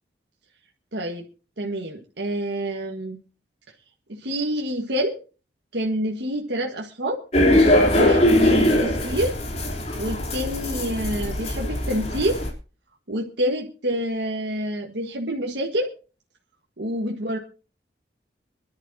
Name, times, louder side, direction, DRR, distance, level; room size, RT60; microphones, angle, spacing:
voice 1, 0.9-1.2 1.6-3.2 4.1-5.2 5.7-7.2 7.9-9.4 9.9-12.4 13.1-15.9 16.8-17.4, equal, 75° right, 1 dB, 1.6 m, -27 dB
sound 1, 7.3-12.5, left 1 dB, 35° left, 3.4 m, -21 dB
24.5 x 11.5 x 2.8 m, 0.36 s
head